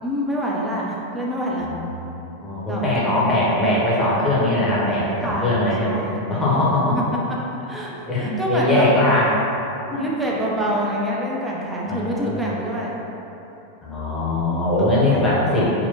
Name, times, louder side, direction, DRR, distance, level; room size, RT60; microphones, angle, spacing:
voice 1, 0.0-1.7 2.7-3.4 5.2-6.4 7.5-8.9 10.0-13.0 14.9-15.7, equal, 10° right, -4 dB, 0.5 m, -27 dB
voice 2, 1.7-2.0 2.4-5.9 6.3-7.0 8.1-9.4 9.9-10.0 11.9-12.5 13.8-15.9, left 1 dB, 15° left, -7 dB, 0.8 m, -21 dB
4.1 x 2.2 x 2.7 m, 3.0 s
figure-of-eight pair, 90°, 0 cm